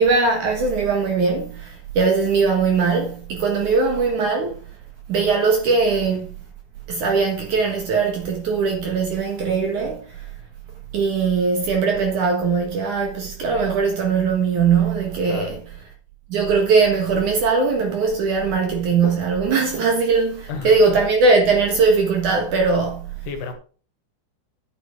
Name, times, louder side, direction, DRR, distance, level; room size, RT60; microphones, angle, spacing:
voice 1, 0.0-4.5 5.1-6.4 6.9-10.0 10.9-15.6 16.3-23.1, right 4 dB, 55° right, 2.4 m, -20 dB
voice 2, 20.5-21.0 23.2-23.5, left 5 dB, 70° left, 3.4 m, -32 dB
9.6 x 8.7 x 5.0 m
omnidirectional pair, 5.1 m